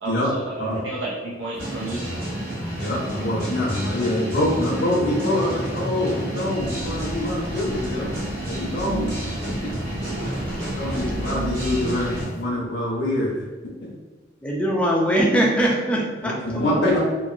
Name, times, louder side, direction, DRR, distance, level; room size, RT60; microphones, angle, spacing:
voice 1, 0.0-2.1, right 2 dB, 70° right, -7 dB, 0.5 m, -31 dB
sound 1, 1.6-12.3, right 1 dB, 50° right, 1.3 m, -30 dB
voice 2, 2.8-8.1 8.5-9.1 9.6-9.7 10.8-13.4 13.8-13.9 16.2-17.0, left 1 dB, 55° left, -6 dB, 0.8 m, -25 dB
sound 2, 6.6-12.3, left 1 dB, 90° right, 1.1 m, -37 dB
voice 3, 14.4-16.9, right 1 dB, 5° left, -3 dB, 0.4 m, -22 dB
3.0 x 2.5 x 2.5 m, 1.2 s
head